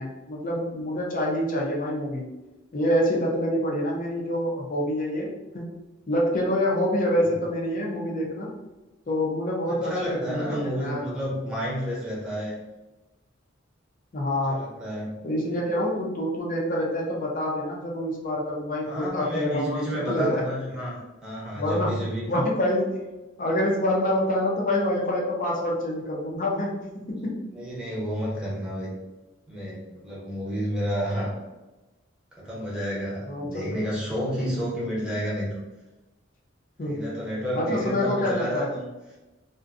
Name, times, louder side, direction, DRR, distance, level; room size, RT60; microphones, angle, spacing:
voice 1, 0.0-2.2 2.7-5.3 5.5-5.7 6.1-8.5 9.1-11.0 14.1-14.7 15.2-19.8 20.1-20.4 21.6-21.9 22.3-23.0 23.4-27.4 33.3-33.7 36.8-37.1 37.5-38.7, left 1 dB, 45° left, -2 dB, 0.5 m, -26 dB
voice 2, 9.7-12.6 14.5-15.1 18.8-22.3 27.5-28.9 29.5-31.3 32.4-35.6 36.8-38.9, equal, 5° right, -7 dB, 0.8 m, -30 dB
2.5 x 2.1 x 2.5 m, 1.1 s
head